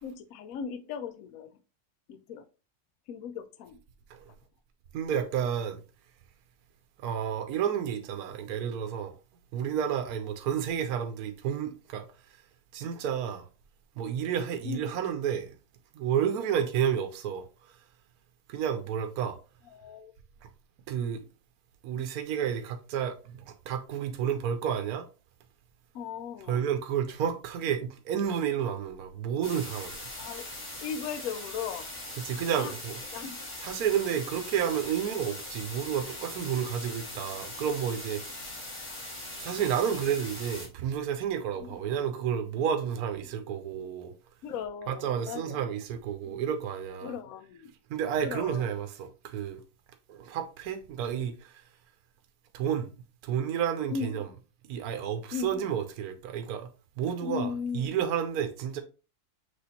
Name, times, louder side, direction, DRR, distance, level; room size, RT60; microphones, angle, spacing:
voice 1, 0.0-1.5 2.1-2.4 3.1-3.8 14.6-14.9 19.7-20.1 25.9-26.6 30.2-31.9 32.6-32.7 33.1-33.4 41.6-41.8 44.4-45.6 46.2-46.4 47.0-47.7 48.2-48.7 53.9-54.2 55.3-55.6 57.2-58.0, left 6 dB, 70° left, 1.0 m, -37 dB
voice 2, 4.9-5.8 7.0-9.1 9.5-12.1 12.7-13.5 14.0-15.5 15.9-17.7 18.5-19.4 20.9-21.2 21.8-25.1 26.5-30.1 32.2-33.0 33.6-38.2 39.4-44.1 44.9-47.2 47.9-49.6 50.1-51.6 52.5-52.9 53.2-54.3 54.7-56.7 57.0-58.8, right 8 dB, 75° right, 1.1 m, -31 dB
sound 1, 29.4-40.7, left 1 dB, 30° left, 1.8 m, -41 dB
6.1 x 2.9 x 2.9 m
omnidirectional pair, 1.7 m